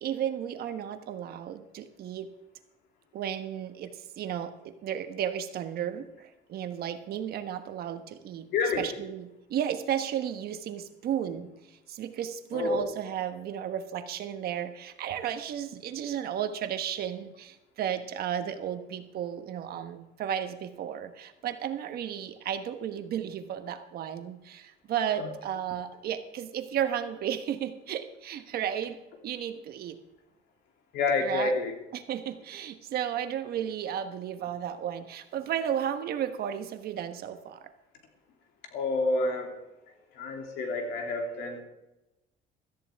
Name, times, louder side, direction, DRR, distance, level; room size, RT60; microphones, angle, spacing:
voice 1, 0.0-2.3 3.1-8.5 8.8-11.5 11.9-29.0 29.2-30.0 31.2-31.6 31.9-37.6, right 9 dB, 65° right, 8 dB, 1.3 m, -33 dB
voice 2, 8.5-8.9 12.5-12.9 25.2-25.3 30.9-31.8 38.7-39.6 40.2-41.6, left 3 dB, 85° left, 3 dB, 2.8 m, -28 dB
17.0 x 13.5 x 3.5 m, 0.98 s
cardioid pair, 110°, 17 cm